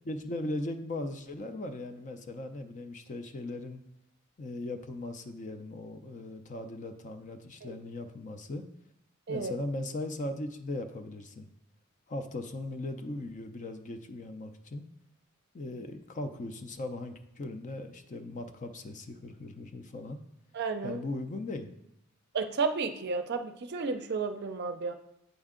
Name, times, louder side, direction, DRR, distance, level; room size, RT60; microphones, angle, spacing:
voice 1, 0.0-3.8 4.4-8.6 9.3-11.5 12.1-14.9 15.5-20.2 20.8-21.7, left 2 dB, 35° left, 7 dB, 0.5 m, -38 dB
voice 2, 20.5-21.0 22.3-24.9, right 4 dB, 50° right, 7 dB, 0.5 m, -32 dB
8.1 x 4.4 x 3.7 m, 0.82 s
head